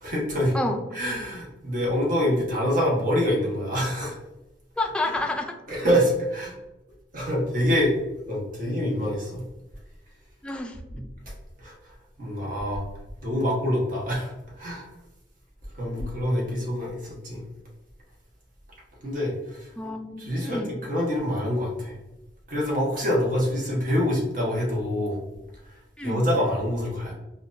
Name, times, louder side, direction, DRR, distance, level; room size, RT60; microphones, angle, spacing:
voice 1, 0.0-0.5 0.9-4.1 5.7-6.5 7.1-7.9 8.3-9.4 11.6-11.7 12.2-12.8 13.2-14.3 14.6-14.9 15.7-17.4 19.0-19.7 20.2-21.9 22.5-25.2 26.0-27.1, equal, 50° right, -3 dB, 1.2 m, -25 dB
voice 2, 4.8-5.6 10.4-10.8 16.0-16.1 19.8-20.7 26.0-26.2, left 2 dB, 5° left, 3 dB, 0.3 m, -29 dB
4.3 x 2.4 x 2.6 m, 0.98 s
head